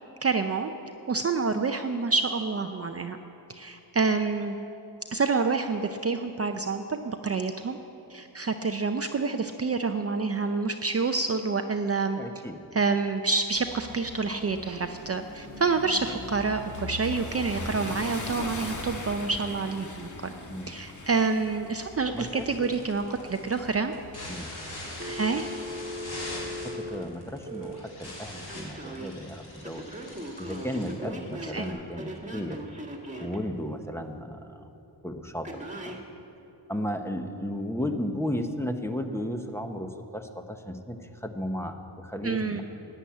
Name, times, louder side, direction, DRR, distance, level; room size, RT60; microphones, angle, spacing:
voice 1, 0.2-0.7 1.1-3.2 3.5-4.6 5.1-7.8 8.1-12.2 12.7-20.3 20.7-23.9 25.0-25.4 31.4-31.7 42.2-42.6, right 4 dB, 35° right, 6 dB, 0.6 m, -28 dB
voice 2, 12.2-12.6 20.5-20.7 22.1-22.7 24.3-24.5 26.6-29.8 30.4-32.6 33.2-34.6 35.0-35.6 35.8-36.0 36.7-42.6, equal, 5° left, 6 dB, 0.9 m, -34 dB
sound 1, 13.5-25.6, left 2 dB, 40° left, 1.5 m, -41 dB
sound 2, 22.1-31.7, left 1 dB, 60° left, 3.9 m, -42 dB
Telephone, 25.0-27.8 28.5-29.1 29.6-33.4 35.4-36.0, equal, 15° right, 1.7 m, -38 dB
12.0 x 10.0 x 8.5 m, 2.9 s
wide cardioid pair, 95°, 44 cm